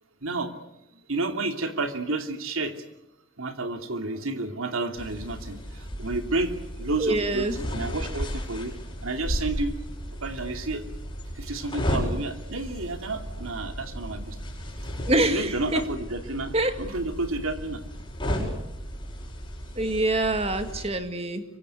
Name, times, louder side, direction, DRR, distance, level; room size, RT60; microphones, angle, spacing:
voice 1, 0.2-0.5 1.1-2.7 3.4-5.6 6.0-8.7 9.0-9.8 10.2-10.8 11.3-14.4 15.3-17.8, right 2 dB, 80° right, 6 dB, 2.8 m, -30 dB
sound 1, 5.0-20.9, equal, 25° left, 7.1 m, -34 dB
voice 2, 7.0-7.7 15.1-15.8 16.5-16.7 19.8-21.4, right 2 dB, 30° right, 8 dB, 2.0 m, -25 dB
25.5 x 24.0 x 8.3 m, 0.85 s
head